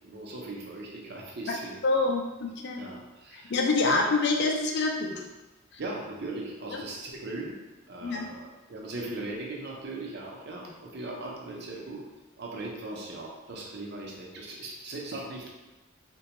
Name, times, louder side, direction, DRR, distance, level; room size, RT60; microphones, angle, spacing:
voice 1, 0.0-1.8 2.7-3.5 5.8-7.6 7.9-12.0 12.4-15.5, right 2 dB, 55° right, -2 dB, 0.6 m, -39 dB
voice 2, 1.8-2.9 3.3-5.2 8.0-8.3, left 3 dB, 55° left, 1 dB, 0.4 m, -26 dB
3.4 x 2.2 x 2.9 m, 1.1 s
head